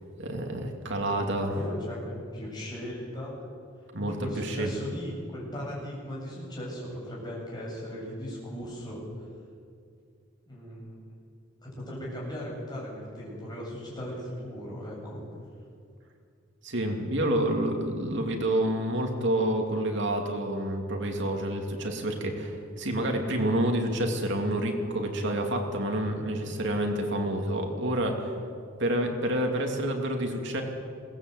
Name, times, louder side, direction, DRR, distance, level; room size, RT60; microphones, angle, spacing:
voice 1, 0.2-1.5 3.9-4.7 16.6-28.3 28.8-30.6, right 1 dB, 60° right, 2 dB, 2.9 m, -28 dB
voice 2, 0.8-3.4 4.0-9.0 10.5-10.9 11.6-15.3, equal, 20° left, -4 dB, 7.9 m, -38 dB
21.5 x 18.0 x 8.1 m, 2.3 s
head